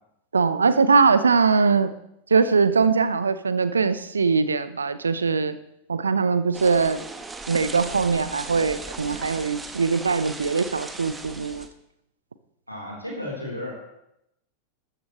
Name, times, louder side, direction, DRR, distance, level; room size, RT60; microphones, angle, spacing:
voice 1, 0.3-1.9 2.3-5.6 5.9-7.0 7.5-11.7, right 5 dB, 75° right, 14 dB, 0.7 m, -21 dB
sound 1, 6.5-11.7, right 3 dB, 10° right, 1.2 m, -38 dB
voice 2, 12.7-13.7, left 1 dB, 90° left, -3 dB, 3.8 m, -33 dB
13.5 x 13.5 x 3.2 m, 0.81 s
figure-of-eight pair, 90°, 0 cm